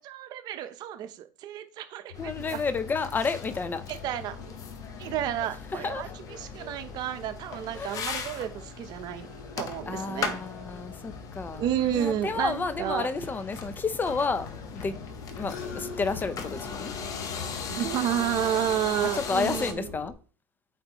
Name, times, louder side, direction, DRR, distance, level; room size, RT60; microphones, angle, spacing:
voice 1, 0.1-2.6 3.9-4.6 5.0-9.3 9.6-10.4 11.5-13.1 17.7-19.9, right 11 dB, 50° right, 0.8 m, -31 dB
sound 1, 2.1-20.1, left 5 dB, 85° left, 1.6 m, -43 dB
sound 2, 2.1-19.7, left 5 dB, 40° left, 1.0 m, -40 dB
voice 2, 2.2-3.8 5.4-5.5 5.7-6.0 7.7-8.0 9.8-11.7 11.9-14.5 14.7-15.0 15.3-16.9 19.1-20.1, left 4 dB, 20° left, 0.6 m, -31 dB
8.6 x 4.2 x 3.1 m
supercardioid pair, 100°, 9 cm